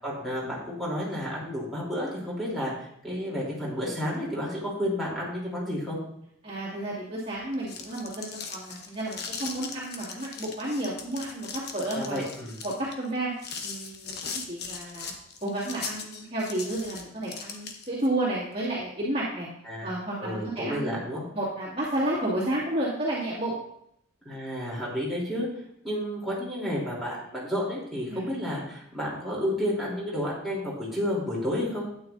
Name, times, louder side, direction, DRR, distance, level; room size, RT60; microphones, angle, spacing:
voice 1, 0.0-6.0 11.9-12.5 19.6-21.2 24.2-25.5 25.8-31.8, equal, ahead, -8 dB, 3.4 m, -31 dB
voice 2, 6.4-12.2 12.6-13.3 13.6-15.1 15.4-19.5 19.8-21.0 21.3-23.6 28.1-28.3, right 1 dB, 30° right, -8 dB, 2.4 m, -31 dB
sound 1, 7.4-18.1, left 5 dB, 50° left, 1.1 m, -39 dB
12.0 x 9.2 x 2.7 m, 0.74 s
head